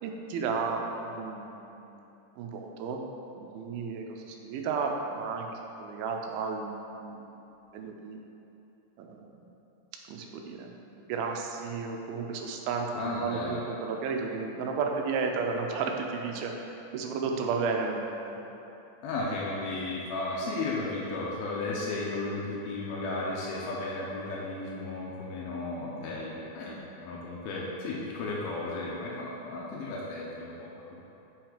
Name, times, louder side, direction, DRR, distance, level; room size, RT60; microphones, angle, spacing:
voice 1, 0.0-2.0 2.4-3.0 3.4-5.5 5.8-7.4 7.7-8.2 9.0-9.3 10.1-18.4, right 4 dB, 85° right, 2 dB, 2.5 m, -33 dB
voice 2, 12.9-13.6 19.0-31.0, left 2 dB, 85° left, -5 dB, 2.7 m, -34 dB
6.3 x 5.9 x 5.0 m, 2.9 s
omnidirectional pair, 4.2 m